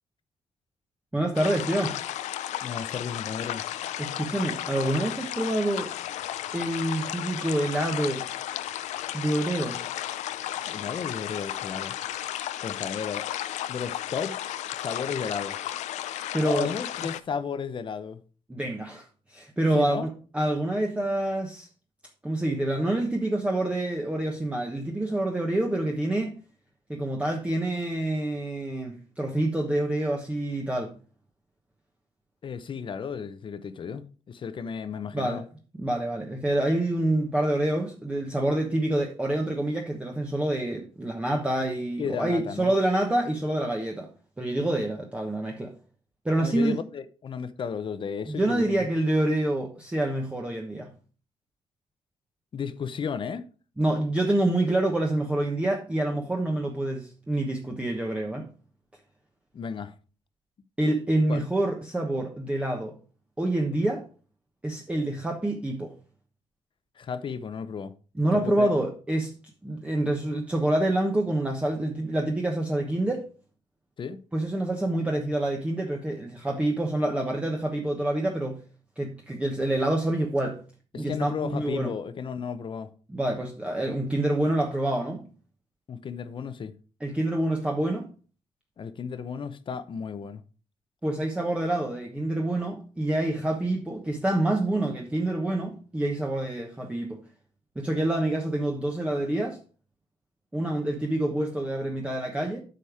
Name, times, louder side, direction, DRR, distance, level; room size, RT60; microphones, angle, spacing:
voice 1, 1.1-2.0 4.0-5.9 6.5-8.3 9.1-9.8 16.3-16.7 18.5-21.7 22.2-26.4 26.9-30.9 35.1-35.4 35.8-44.1 44.4-45.7 46.2-46.8 48.3-50.9 53.8-58.5 60.8-62.9 63.4-64.0 64.6-65.9 68.2-69.3 69.6-73.3 74.3-78.6 79.0-80.6 80.9-81.9 83.1-85.3 87.0-88.1 91.0-97.2 97.7-99.6 100.5-102.6, right 1 dB, 10° right, 1.1 m, -27 dB
sound 1, 1.4-17.2, left 12 dB, 85° left, 0.5 m, -34 dB
voice 2, 2.6-3.6 10.7-11.9 12.6-13.3 13.7-14.4 14.7-15.6 16.4-18.2 19.7-20.1 32.4-35.4 42.0-42.7 46.4-48.9 52.5-53.4 59.5-59.9 61.3-61.4 67.0-67.9 68.3-68.7 74.0-74.2 80.9-82.9 85.9-86.7 88.8-90.4, left 6 dB, 45° left, 0.8 m, -33 dB
8.6 x 5.3 x 4.8 m
cardioid pair, 105°, 12 cm